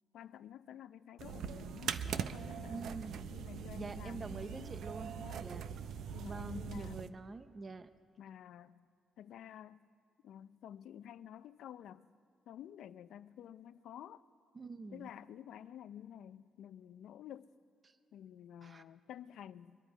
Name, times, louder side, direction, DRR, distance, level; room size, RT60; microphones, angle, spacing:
voice 1, 0.1-2.9 3.3-4.8 5.2-5.5 6.1-7.2 8.2-8.8 9.2-9.9 10.2-12.1 12.5-14.2 14.9-17.5 18.1-19.8, left 10 dB, 75° left, 0.5 m, -51 dB
sound 1, 1.2-7.1, right 7 dB, 75° right, 0.6 m, -42 dB
voice 2, 2.7-3.3 3.7-5.1 5.4-5.7 6.3-7.9 14.5-15.1 17.8-18.0 18.6-18.8, right 3 dB, 35° right, 0.8 m, -46 dB
24.0 x 10.5 x 5.0 m
cardioid pair, 90°, 0 cm